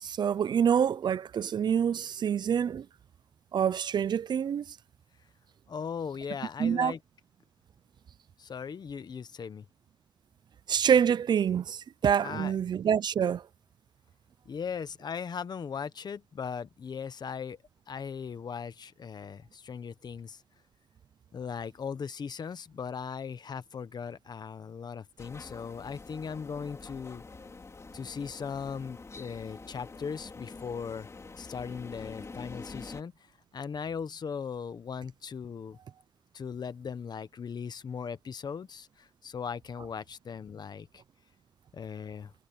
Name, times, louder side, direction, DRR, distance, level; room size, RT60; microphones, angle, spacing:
voice 1, 0.0-2.9 3.5-4.7 6.6-6.9 10.7-13.4, right 8 dB, 85° right, 0.4 m, -26 dB
voice 2, 5.7-7.0 8.4-9.7 12.2-12.5 14.4-17.6 17.9-20.4 21.3-27.2 27.9-31.1 31.4-33.1 33.5-35.8 36.3-41.0 41.7-42.3, left 6 dB, 70° left, 1.0 m, -38 dB
sound 1, 25.2-33.0, left 3 dB, 40° left, 4.5 m, -46 dB
wide cardioid pair, 120°, 7 cm